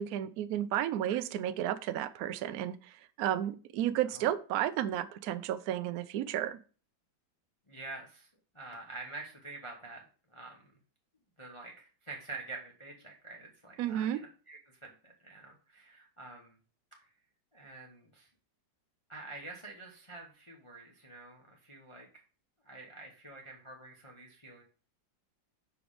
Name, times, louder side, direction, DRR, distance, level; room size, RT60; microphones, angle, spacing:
voice 1, 0.0-6.6 13.8-14.2, right 11 dB, 80° right, 0.8 m, -32 dB
voice 2, 7.7-8.3 8.5-10.1 10.3-10.6 11.4-16.6 17.0-17.1 17.5-18.3 19.1-22.2 22.6-24.6, right 3 dB, 25° left, 0.6 m, -47 dB
5.2 x 4.6 x 4.9 m
omnidirectional pair, 2.1 m